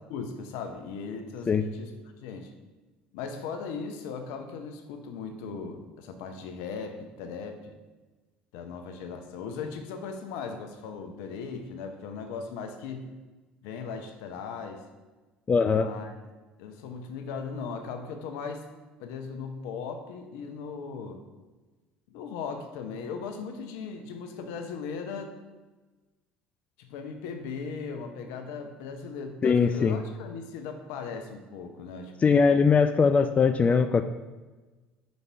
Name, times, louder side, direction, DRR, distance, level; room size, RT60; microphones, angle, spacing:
voice 1, 0.1-1.9 2.2-2.5 3.1-7.7 8.5-13.1 13.6-14.8 15.7-16.1 16.6-18.7 19.0-21.2 22.1-25.4 26.8-32.8, left 5 dB, 70° left, 6 dB, 0.7 m, -38 dB
voice 2, 15.5-15.9 29.4-30.0 32.2-34.0, left 5 dB, 30° left, 9 dB, 0.3 m, -21 dB
5.2 x 4.0 x 4.5 m, 1.2 s
hypercardioid pair, 65°, 5 cm